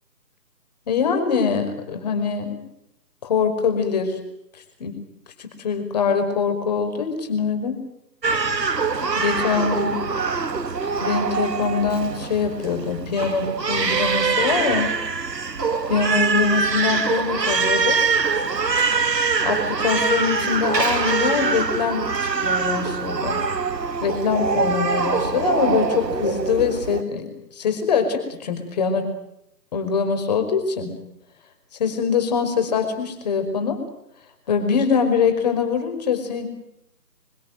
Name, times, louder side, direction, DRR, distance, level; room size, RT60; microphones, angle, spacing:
voice 1, 0.9-2.6 3.2-4.2 4.8-5.0 5.4-7.8 9.0-10.0 11.0-14.9 15.9-18.0 19.4-23.4 24.0-29.1 29.7-30.9 31.8-33.8 34.5-36.5, left 6 dB, 25° left, 7 dB, 5.3 m, -23 dB
Crying sobbing, 8.2-27.0, right 4 dB, 75° right, 1.8 m, -23 dB
26.0 x 25.5 x 7.7 m, 0.82 s
figure-of-eight pair, 160°, 50 cm